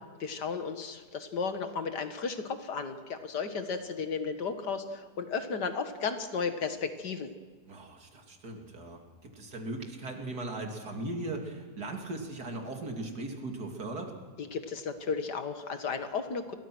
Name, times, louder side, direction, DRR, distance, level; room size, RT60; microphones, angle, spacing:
voice 1, 0.2-7.3 14.4-16.6, left 5 dB, 80° left, 8 dB, 2.3 m, -34 dB
voice 2, 7.7-14.1, right 2 dB, 70° right, 3 dB, 3.3 m, -38 dB
29.0 x 22.5 x 6.3 m, 1.4 s
omnidirectional pair, 1.8 m